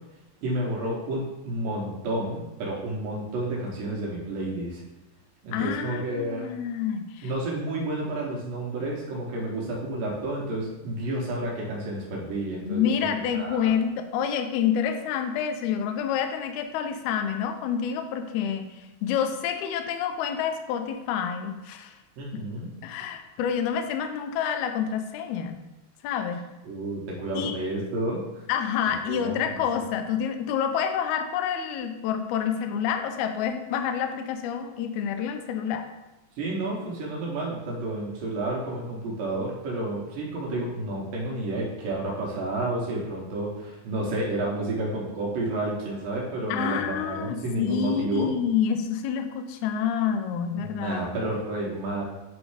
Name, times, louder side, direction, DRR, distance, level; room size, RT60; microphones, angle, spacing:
voice 1, 0.4-4.8 5.4-6.4 7.2-13.7 22.2-22.7 26.6-28.5 29.1-29.4 36.4-48.3 50.6-52.0, right 2 dB, 80° right, -3 dB, 2.7 m, -30 dB
voice 2, 5.5-7.3 12.7-21.9 22.8-25.6 26.0-26.4 27.3-27.6 28.5-35.8 46.5-51.1, left 8 dB, 85° left, 7 dB, 1.7 m, -28 dB
8.3 x 3.1 x 4.8 m, 1.0 s
omnidirectional pair, 4.0 m